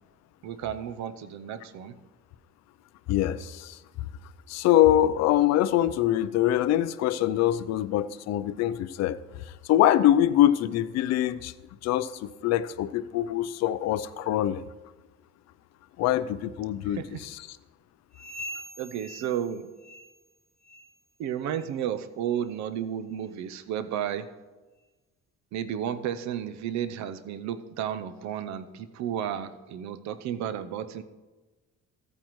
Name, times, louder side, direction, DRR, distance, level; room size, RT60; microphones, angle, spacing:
voice 1, 0.4-1.9 16.9-17.2 18.8-19.7 21.2-24.3 25.5-31.0, right 9 dB, 70° right, 12 dB, 0.7 m, -32 dB
voice 2, 3.1-3.8 4.5-9.2 9.7-11.5 11.8-14.6 16.0-17.4, left 12 dB, 65° left, 14 dB, 0.5 m, -24 dB
sound 1, 18.1-20.3 20.6-21.0 21.4-21.7 22.3-22.4 23.1-23.2 24.0-24.1, equal, 25° left, 3.3 m, -43 dB
14.0 x 8.9 x 3.1 m, 1.2 s
cardioid pair, 145°, 29 cm